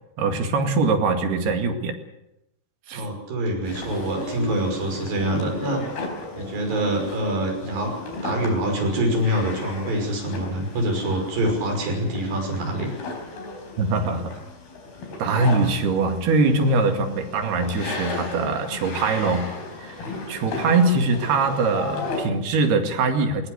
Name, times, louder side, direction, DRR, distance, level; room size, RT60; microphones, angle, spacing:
voice 1, 0.2-1.9 2.9-3.1 13.8-14.4 15.2-19.5 19.8-23.5, right 3 dB, 85° right, 5 dB, 4.2 m, -22 dB
voice 2, 2.9-5.8 6.4-7.9 8.2-12.9, right 1 dB, 65° right, 2 dB, 7.6 m, -25 dB
sound 1, 3.6-22.2, left 3 dB, 75° left, 6.3 m, -35 dB
20.0 x 19.5 x 8.2 m, 0.85 s
omnidirectional pair, 4.5 m